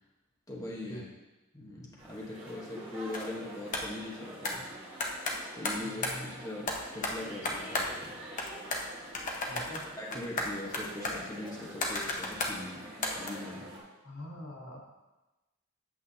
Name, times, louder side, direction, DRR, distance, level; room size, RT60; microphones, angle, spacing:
voice 1, 0.5-1.0 1.5-4.7 5.5-8.2 10.0-12.8 13.2-13.7, left 2 dB, 15° left, -4 dB, 1.2 m, -41 dB
sound 1, 2.0-13.8, right 1 dB, 25° right, 1.6 m, -47 dB
sound 2, 3.1-3.3 3.7-3.9 4.4-4.6 5.0-6.2 6.7-8.1 8.4-8.9 9.1-12.6 13.0-13.3, left 2 dB, 35° left, 0.9 m, -34 dB
voice 2, 5.8-6.4 9.5-9.8 14.0-14.8, equal, 90° left, -3 dB, 1.7 m, -44 dB
8.3 x 7.3 x 2.8 m, 1.1 s
head